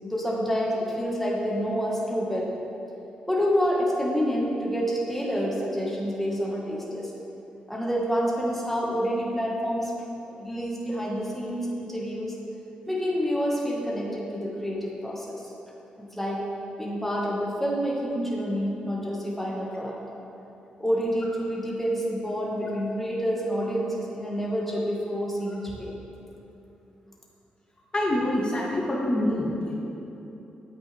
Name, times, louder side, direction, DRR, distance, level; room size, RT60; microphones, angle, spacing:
voice 1, 0.0-2.5 3.3-7.1 7.7-9.9 10.4-12.4 12.9-15.4 16.0-16.5 16.8-20.0 20.8-25.9, equal, 5° left, -4 dB, 1.9 m, -28 dB
voice 2, 27.9-29.7, left 1 dB, 30° left, -3 dB, 1.9 m, -26 dB
9.8 x 8.2 x 3.6 m, 3.0 s
supercardioid pair, 50°, 3 cm